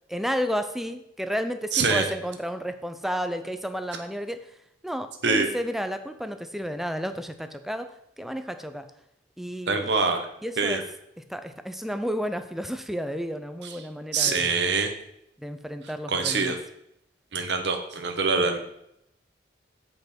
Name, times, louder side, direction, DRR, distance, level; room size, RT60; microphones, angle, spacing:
voice 1, 0.1-4.5 4.8-8.9 9.4-9.9 10.4-10.8 11.2-14.5 15.4-16.6, equal, ahead, 9 dB, 0.5 m, -32 dB
voice 2, 1.7-2.0 5.2-5.5 9.7-10.3 10.6-10.8 14.1-14.9 16.1-16.6 17.3-18.6, right 4 dB, 65° right, 5 dB, 1.1 m, -24 dB
8.2 x 5.2 x 4.4 m, 0.79 s
head